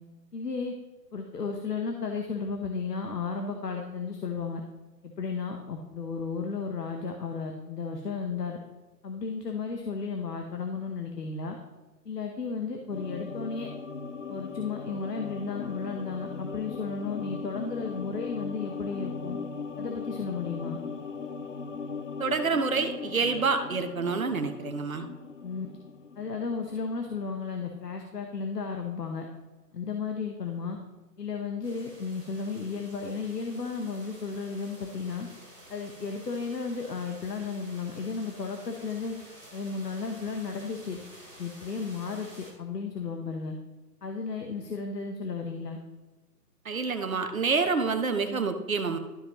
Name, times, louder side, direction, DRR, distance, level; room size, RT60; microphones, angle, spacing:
voice 1, 0.3-0.7 1.1-4.6 5.0-8.6 9.0-11.6 12.0-13.7 14.3-19.4 19.8-20.8 25.4-25.7 26.2-29.3 29.7-30.8 31.2-35.3 35.7-39.1 39.5-41.0 41.4-43.6 44.0-45.8, left 5 dB, 70° left, 3 dB, 1.2 m, -34 dB
sound 1, 12.9-27.5 27.7-27.8, left 5 dB, 50° left, 0.5 m, -39 dB
voice 2, 22.2-25.1 46.6-49.0, right 4 dB, 55° right, 8 dB, 1.0 m, -27 dB
sound 2, 31.6-42.5, right 1 dB, 5° left, 0.8 m, -51 dB
12.5 x 5.2 x 3.1 m, 1.2 s
figure-of-eight pair, 150°, 50 cm